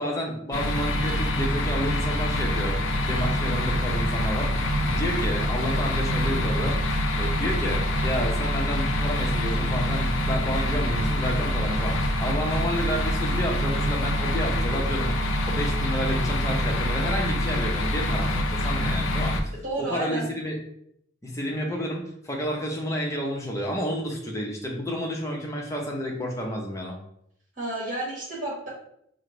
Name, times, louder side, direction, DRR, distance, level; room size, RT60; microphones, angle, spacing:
voice 1, 0.0-20.6 21.2-27.0, equal, 15° left, -1 dB, 0.7 m, -30 dB
sound 1, 0.5-19.4, equal, 90° left, 0.5 m, -25 dB
voice 2, 19.5-20.3 27.6-28.7, right 2 dB, 40° right, -4 dB, 1.5 m, -31 dB
5.0 x 2.2 x 3.8 m, 0.72 s
head